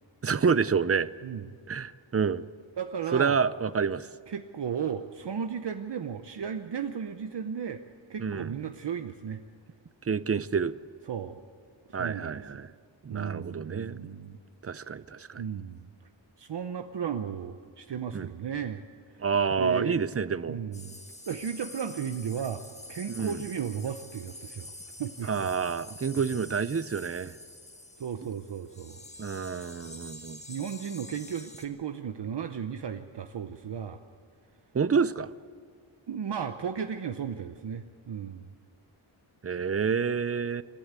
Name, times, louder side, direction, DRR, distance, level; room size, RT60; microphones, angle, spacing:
voice 1, 0.2-1.1 1.7-2.5 3.1-4.1 8.2-8.5 10.0-10.8 11.9-12.7 13.0-14.0 14.6-15.4 18.1-18.3 19.2-20.6 23.1-23.4 25.3-27.4 29.2-30.4 34.7-35.3 39.4-40.6, right 6 dB, 30° right, 16 dB, 0.5 m, -28 dB
voice 2, 2.8-3.4 4.3-7.8 8.1-9.4 11.1-11.4 12.0-12.6 13.1-14.4 15.4-15.9 16.4-18.8 19.1-19.3 19.6-20.0 20.5-21.0 21.3-22.6 22.9-24.7 25.0-25.5 28.0-29.0 30.5-34.0 36.1-38.5, right 7 dB, 60° right, 7 dB, 0.8 m, -35 dB
sound 1, 20.7-31.7, left 2 dB, 15° left, 1.6 m, -47 dB
27.5 x 11.5 x 8.2 m, 2.1 s
wide cardioid pair, 135°, 47 cm